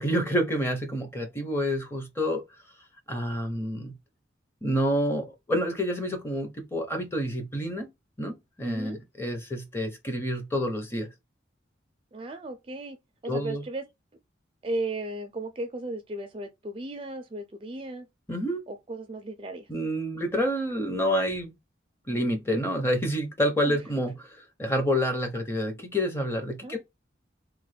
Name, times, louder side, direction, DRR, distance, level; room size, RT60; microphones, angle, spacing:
voice 1, 0.0-2.4 3.1-3.9 4.6-7.9 8.2-11.1 13.3-13.6 18.3-18.6 19.7-21.5 22.1-24.1 24.6-26.8, equal, 10° left, 0.6 m, -28 dB
voice 2, 8.6-9.0 12.1-13.0 13.2-13.8 14.6-18.1 18.7-19.7 23.6-23.8 26.6-26.8, right 2 dB, 25° right, 0.4 m, -35 dB
3.1 x 2.1 x 3.2 m
head